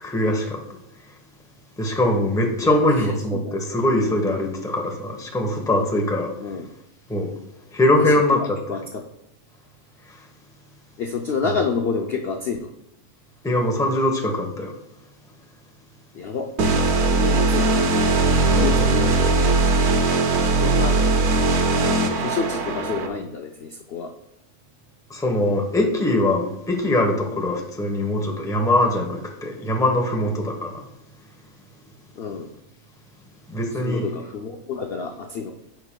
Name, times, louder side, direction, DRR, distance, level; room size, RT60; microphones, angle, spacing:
voice 1, 0.0-0.6 1.8-6.3 7.1-7.3 7.7-8.4 13.4-14.7 18.5-18.8 25.1-30.7 33.5-34.0, left 1 dB, 5° left, 1 dB, 0.7 m, -22 dB
voice 2, 2.6-3.6 6.4-6.7 8.0-9.0 11.0-12.7 16.1-16.5 17.1-17.8 18.4-19.5 20.6-21.0 22.0-24.1 32.2-32.5 33.8-35.5, left 5 dB, 65° left, 3 dB, 0.6 m, -29 dB
sound 1, 16.6-23.1, right 3 dB, 75° right, 1.3 m, -19 dB
13.5 x 5.3 x 2.2 m, 0.84 s
omnidirectional pair, 1.6 m